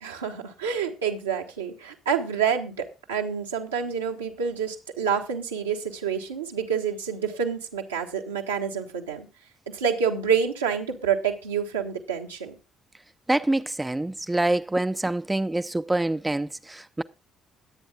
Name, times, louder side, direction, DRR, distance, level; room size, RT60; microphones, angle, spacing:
voice 1, 0.0-9.3 9.7-12.6, right 7 dB, 80° right, 1.5 m, -28 dB
voice 2, 13.3-17.0, right 2 dB, 10° right, 0.6 m, -26 dB
21.5 x 8.9 x 2.4 m
figure-of-eight pair, 45°, 0 cm